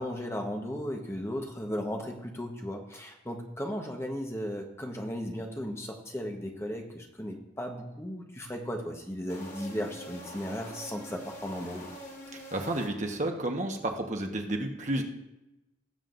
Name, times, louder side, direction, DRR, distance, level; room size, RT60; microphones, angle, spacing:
voice 1, 0.0-11.9, equal, 15° left, 2 dB, 1.1 m, -36 dB
sound 1, 9.3-13.4, equal, 50° left, 2.9 m, -45 dB
voice 2, 12.3-15.0, right 1 dB, 40° right, 3 dB, 1.2 m, -31 dB
18.5 x 7.5 x 2.6 m, 0.96 s
head